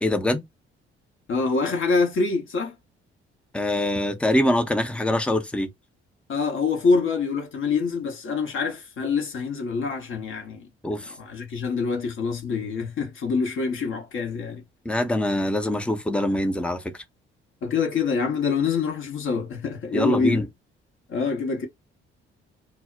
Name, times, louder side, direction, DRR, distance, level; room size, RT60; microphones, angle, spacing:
voice 1, 0.0-0.4 3.5-5.7 10.8-11.1 14.9-16.8 19.9-20.4, left 1 dB, 5° left, 0.5 m, -23 dB
voice 2, 1.3-2.8 6.3-10.7 11.0-14.7 17.6-20.5 21.1-21.7, left 4 dB, 40° left, 0.8 m, -25 dB
2.1 x 2.0 x 3.7 m
figure-of-eight pair, 45°, 31 cm